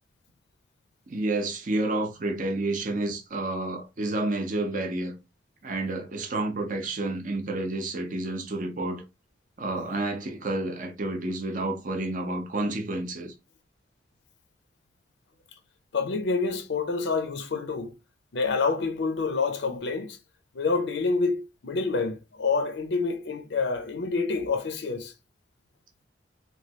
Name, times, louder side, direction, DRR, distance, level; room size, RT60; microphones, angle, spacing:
voice 1, 1.1-5.1 5.6-9.0 9.6-13.3, right 2 dB, 45° right, 0.6 m, -30 dB
voice 2, 15.9-17.9 18.3-20.2 20.5-25.1, left 4 dB, 75° left, 0.5 m, -27 dB
3.1 x 2.3 x 2.8 m
head